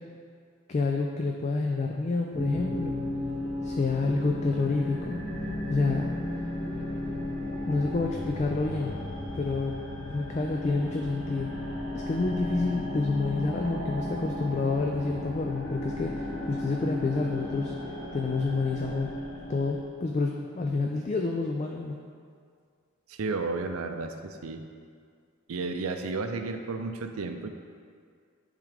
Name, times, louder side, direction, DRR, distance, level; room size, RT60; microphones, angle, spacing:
voice 1, 0.7-3.0 3.6-6.1 7.6-9.0 9.3-9.8 10.1-11.6 11.9-17.7 18.1-19.1 19.5-22.0, left 3 dB, 30° left, 1 dB, 0.3 m, -29 dB
sound 1, 2.3-19.8, left 1 dB, 75° left, 1.4 m, -34 dB
voice 2, 23.1-24.6 25.5-27.5, right 3 dB, 85° right, 6 dB, 0.5 m, -32 dB
10.5 x 3.7 x 3.3 m, 2.2 s
head